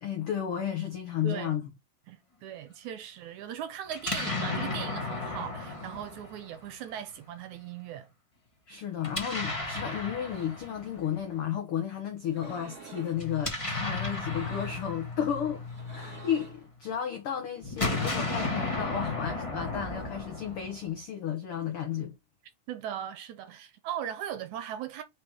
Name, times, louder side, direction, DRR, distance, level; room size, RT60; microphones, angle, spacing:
voice 1, 0.0-1.7 8.7-22.1, left 9 dB, 80° left, 1.2 m, -33 dB
voice 2, 1.2-1.6 2.1-8.1 22.7-25.0, right 10 dB, 75° right, 1.9 m, -38 dB
Explosion, 3.9-6.9 9.0-11.2 13.1-16.6 17.6-21.0, left 3 dB, 45° left, 0.4 m, -34 dB
sound 1, 12.3-13.2 14.1-15.0 15.6-16.7, right 3 dB, 25° right, 2.4 m, -49 dB
5.1 x 4.6 x 4.5 m
omnidirectional pair, 3.9 m